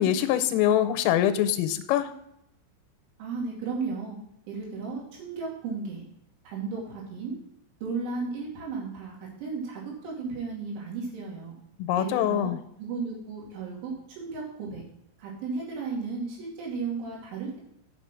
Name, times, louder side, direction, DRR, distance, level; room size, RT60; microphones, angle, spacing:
voice 1, 0.0-2.1 11.8-12.6, left 11 dB, 90° left, 9 dB, 3.3 m, -24 dB
voice 2, 3.2-4.2 4.5-6.1 6.4-7.4 7.8-11.6 12.0-12.5 12.8-14.8 15.2-17.6, right 4 dB, 70° right, -3 dB, 4.8 m, -34 dB
8.1 x 6.7 x 6.0 m, 0.76 s
omnidirectional pair, 5.9 m